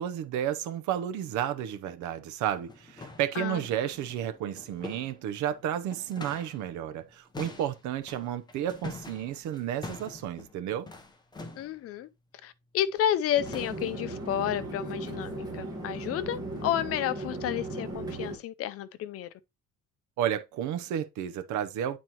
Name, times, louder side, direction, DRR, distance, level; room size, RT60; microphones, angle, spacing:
voice 1, 0.0-10.9 20.2-22.0, right 10 dB, 70° right, 0.7 m, -32 dB
sound 1, 1.8-1.9 2.5-6.7 6.9-11.8 12.9-13.2 13.5-14.1 14.5-14.8 15.2-15.4 15.8-16.0 16.5-16.7 17.2-17.3 17.9-18.0, left 3 dB, 15° left, 0.7 m, -46 dB
voice 2, 11.6-12.1 12.4-19.3, left 11 dB, 50° left, 0.5 m, -31 dB
sound 2, 13.4-18.4, right 2 dB, 10° right, 1.5 m, -37 dB
9.1 x 4.3 x 2.9 m
cardioid pair, 170°, 31 cm